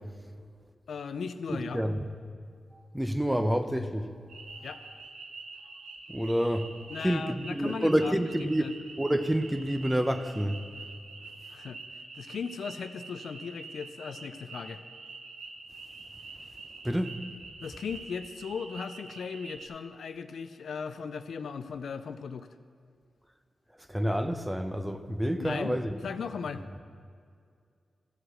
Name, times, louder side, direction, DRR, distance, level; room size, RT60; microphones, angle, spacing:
voice 1, 0.9-1.8 4.6-4.8 6.9-8.1 8.4-8.8 11.5-11.8 12.1-14.8 17.6-22.5 25.4-26.6, left 6 dB, 80° left, 10 dB, 0.4 m, -37 dB
voice 2, 1.5-2.0 2.9-4.1 6.1-6.7 7.0-8.6 9.0-10.6 16.8-17.2 23.9-26.0, equal, 10° right, 8 dB, 0.8 m, -28 dB
sound 1, 4.3-19.7, right 3 dB, 90° right, 0.9 m, -46 dB
14.0 x 4.8 x 6.3 m, 2.2 s
cardioid pair, 50°, 0 cm